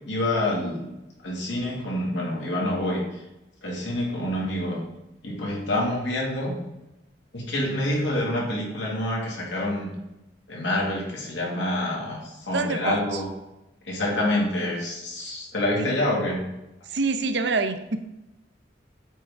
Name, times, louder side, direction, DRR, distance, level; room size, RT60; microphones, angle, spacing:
voice 1, 0.1-0.9 1.2-3.2 3.6-4.8 5.2-6.5 7.3-9.9 10.5-13.3 13.8-16.4, left 1 dB, 90° left, -2 dB, 1.9 m, -27 dB
voice 2, 12.5-13.2 15.8-15.9 16.9-18.0, right 4 dB, 70° right, 9 dB, 0.6 m, -26 dB
8.4 x 3.6 x 3.5 m, 0.94 s
head